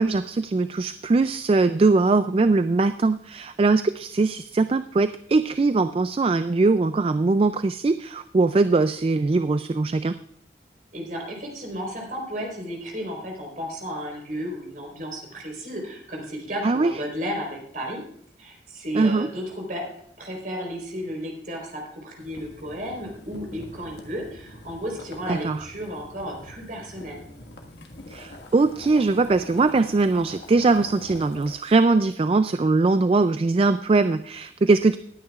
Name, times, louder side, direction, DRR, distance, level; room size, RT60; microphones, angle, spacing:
voice 1, 0.0-10.2 16.6-16.9 18.9-19.3 25.3-25.6 28.1-35.0, right 3 dB, 30° right, 11 dB, 0.3 m, -21 dB
voice 2, 10.9-18.0 18.4-19.9 20.2-27.2, equal, 45° right, 0 dB, 4.0 m, -33 dB
Boiling, 22.2-31.5, left 1 dB, 65° left, 1.6 m, -44 dB
19.5 x 9.4 x 2.4 m, 0.67 s
head